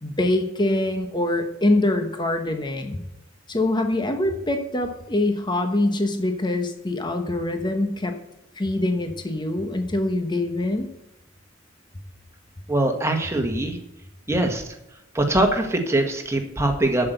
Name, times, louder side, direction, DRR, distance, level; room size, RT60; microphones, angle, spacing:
voice 1, 0.0-3.0 3.5-8.1 8.6-10.9, left 1 dB, 25° left, 5 dB, 1.1 m, -24 dB
voice 2, 12.7-13.8 14.3-14.6 15.1-17.1, right 1 dB, 15° right, 3 dB, 1.6 m, -22 dB
8.4 x 7.8 x 8.0 m, 0.86 s
head